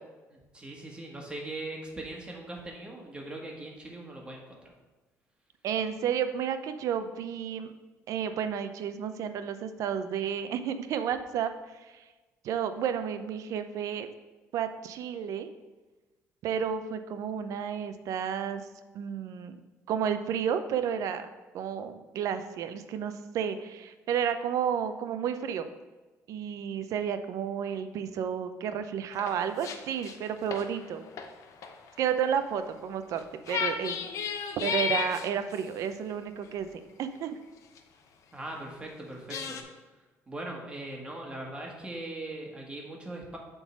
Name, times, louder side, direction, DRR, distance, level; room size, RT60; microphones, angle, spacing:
voice 1, 0.3-4.7 38.3-39.6 40.3-43.4, right 2 dB, 15° right, -1 dB, 1.7 m, -40 dB
voice 2, 5.6-7.7 8.1-11.5 11.9-12.0 12.4-14.1 14.5-15.5 16.4-18.6 18.9-19.6 19.9-21.3 21.5-25.7 26.3-31.0 32.0-33.2 33.5-34.0 34.3-36.7 37.0-37.4, right 8 dB, 70° right, 9 dB, 0.6 m, -31 dB
sound 1, 29.1-29.8 30.0-32.2 33.2-33.3 33.5-35.6 36.4-36.5 37.8-37.9 39.3-39.6, left 6 dB, 65° left, 0.8 m, -33 dB
7.7 x 3.9 x 6.1 m, 1.2 s
cardioid pair, 115°, 6 cm